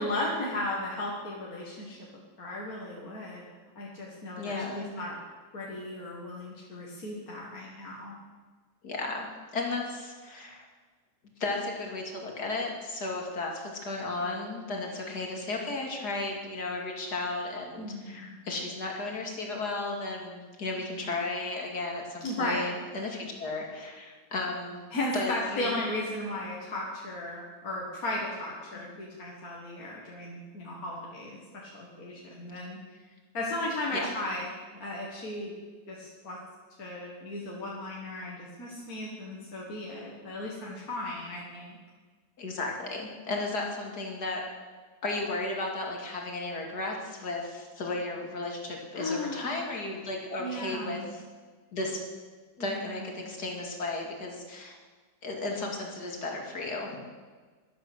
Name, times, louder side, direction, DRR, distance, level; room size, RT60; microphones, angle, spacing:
voice 1, 0.0-2.0 2.4-3.4 3.8-5.2 5.5-8.2 17.8-18.3 22.2-22.7 24.9-32.8 33.3-35.5 35.9-36.4 36.8-41.8 48.9-49.7 50.4-51.1 52.6-52.8, left 1 dB, 65° left, -4 dB, 2.3 m, -35 dB
voice 2, 4.4-4.9 8.8-9.3 9.5-10.7 11.4-24.8 25.1-25.7 33.9-34.1 42.4-44.4 45.0-51.2 51.7-52.0 52.6-54.8 55.2-57.0, left 2 dB, 85° left, 0 dB, 3.0 m, -34 dB
13.0 x 12.0 x 6.3 m, 1.4 s
omnidirectional pair, 1.7 m